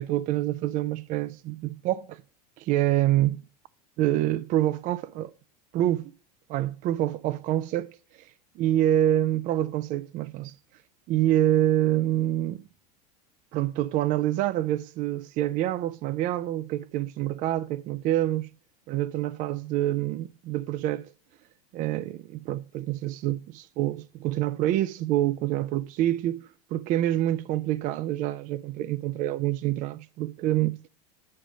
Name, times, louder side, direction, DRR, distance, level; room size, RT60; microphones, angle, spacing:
voice 1, 0.0-2.2 2.6-3.4 4.0-5.3 5.7-6.1 6.5-8.3 8.6-10.5 11.1-12.6 13.5-18.5 18.9-21.1 21.7-30.8, right 13 dB, 40° right, 0.4 m, -26 dB
8.7 x 4.9 x 5.2 m
hypercardioid pair, 85°, 20 cm